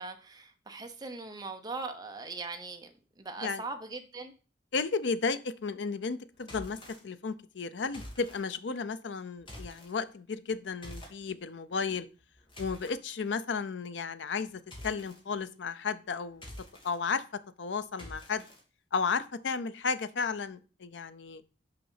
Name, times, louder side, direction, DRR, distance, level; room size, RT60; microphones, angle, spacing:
voice 1, 0.0-4.3, right 3 dB, 20° right, 0.9 m, -40 dB
voice 2, 4.7-12.1 12.6-16.5 16.8-17.2 17.6-18.4 18.9-21.4, left 5 dB, 85° left, 0.6 m, -33 dB
sound 1, 6.4-7.0 7.9-8.4 9.4-9.9 10.8-11.2 12.2-13.0 14.7-15.2 16.3-17.0 18.0-18.6, left 1 dB, 30° left, 1.8 m, -46 dB
5.7 x 5.2 x 5.6 m
head